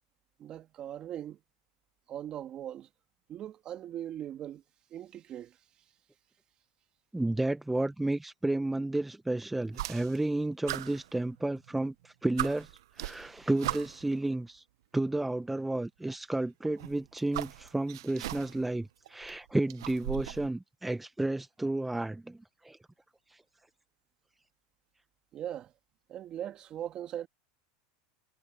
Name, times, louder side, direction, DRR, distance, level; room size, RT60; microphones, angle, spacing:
voice 1, 0.4-1.4 2.1-2.9 3.3-4.6 4.9-5.6 25.3-25.7 26.1-27.3, right 11 dB, 35° right, 2.4 m, -40 dB
voice 2, 7.1-12.7 13.0-14.6 14.9-22.8 23.3-23.4, right 2 dB, 5° right, 0.7 m, -32 dB
sound 1, 9.7-10.3 10.7-11.7 12.0-12.1 12.4-14.1 15.2-15.3 16.6-18.7 19.1-20.5, right 15 dB, 85° right, 0.8 m, -38 dB
supercardioid pair, 130°, 2 cm